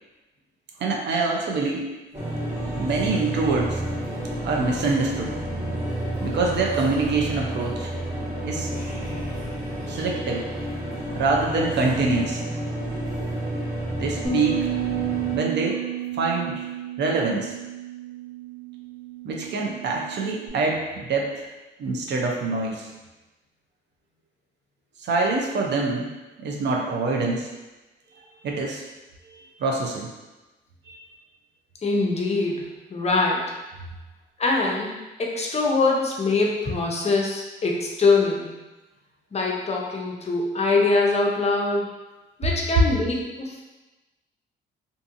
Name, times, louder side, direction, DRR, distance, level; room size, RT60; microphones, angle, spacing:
voice 1, 0.8-1.9 2.8-3.8 4.4-5.3 6.2-7.9 8.4-8.7 9.9-10.4 11.2-12.4 14.0-14.7 15.3-15.8 16.1-16.7 17.0-17.5 19.2-21.5 21.8-22.9 25.0-26.1 26.4-27.5 28.4-28.8 29.3-30.1 30.9-31.0, right 3 dB, 60° right, 0 dB, 0.5 m, -25 dB
sound 1, 2.1-15.4, right 1 dB, 35° right, 1.4 m, -30 dB
Bass guitar, 14.2-20.5, right 8 dB, 10° right, 1.0 m, -32 dB
voice 2, 31.8-33.5 34.4-34.9 35.2-38.6 39.3-42.0 42.4-43.6, left 3 dB, 35° left, -2 dB, 0.5 m, -23 dB
2.6 x 2.6 x 2.5 m, 1.1 s
cardioid pair, 90°, 20 cm